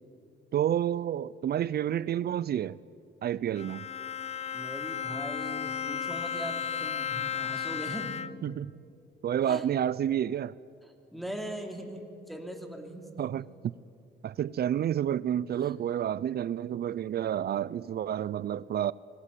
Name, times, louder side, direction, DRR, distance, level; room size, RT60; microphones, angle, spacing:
voice 1, 0.5-2.8 3.2-3.9 8.4-8.7 9.2-10.5 13.2-13.7 14.2-18.9, right 10 dB, 55° right, 0.5 m, -29 dB
Bowed string instrument, 3.5-8.6, left 8 dB, 35° left, 0.7 m, -34 dB
voice 2, 4.5-8.3 9.5-9.7 11.1-13.3 15.6-15.7, right 1 dB, ahead, 3.0 m, -40 dB
25.5 x 20.0 x 8.4 m
cardioid pair, 90°, 20 cm